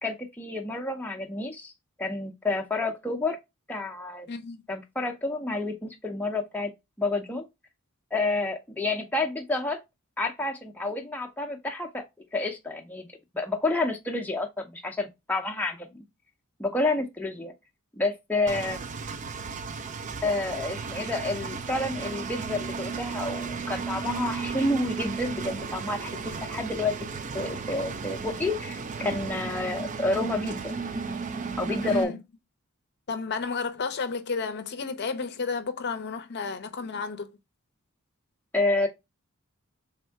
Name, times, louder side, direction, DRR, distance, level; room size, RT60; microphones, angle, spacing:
voice 1, 0.0-1.7 2.0-3.4 3.7-4.3 4.7-6.7 7.0-7.5 8.1-9.8 10.2-12.0 12.3-13.1 13.3-16.0 16.6-17.5 17.9-18.8 20.2-26.9 27.3-30.7 31.6-32.2 38.5-38.9, left 2 dB, 10° left, 0.6 m, -29 dB
Engine, 18.5-32.0, right 5 dB, 35° right, 0.4 m, -34 dB
voice 2, 31.8-32.2 33.1-37.4, left 4 dB, 50° left, 0.6 m, -32 dB
3.5 x 3.3 x 4.5 m
head